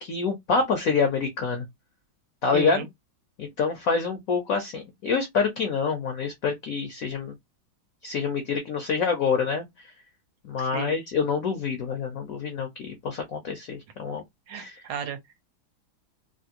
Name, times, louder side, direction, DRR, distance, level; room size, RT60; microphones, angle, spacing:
voice 1, 0.0-1.6 2.4-2.8 3.4-7.4 8.0-9.9 10.5-14.2 14.5-14.9, left 5 dB, 75° left, 0.7 m, -27 dB
voice 2, 2.5-2.9 10.6-11.0 14.5-15.2, right 6 dB, 70° right, 1.2 m, -34 dB
3.3 x 2.5 x 2.7 m
omnidirectional pair, 2.2 m